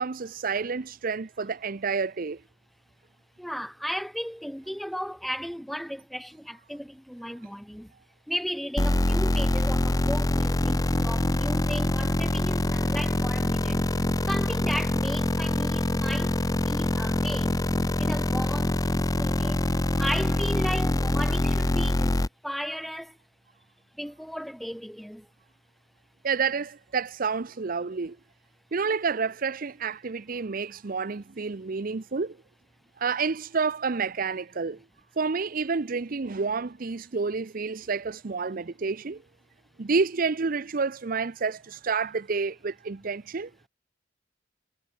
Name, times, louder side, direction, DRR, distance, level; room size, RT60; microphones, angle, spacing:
voice 1, 0.0-2.4 26.2-28.2 28.7-32.4 33.0-34.8 35.2-39.2 39.8-43.5, right 5 dB, 50° right, 0.6 m, -29 dB
voice 2, 3.4-7.9 8.3-13.9 14.3-16.4 16.6-17.6 18.0-19.7 20.0-23.2 23.9-25.3, equal, ahead, 2.9 m, -35 dB
sound 1, 8.8-22.3, left 1 dB, 20° left, 0.7 m, -25 dB
head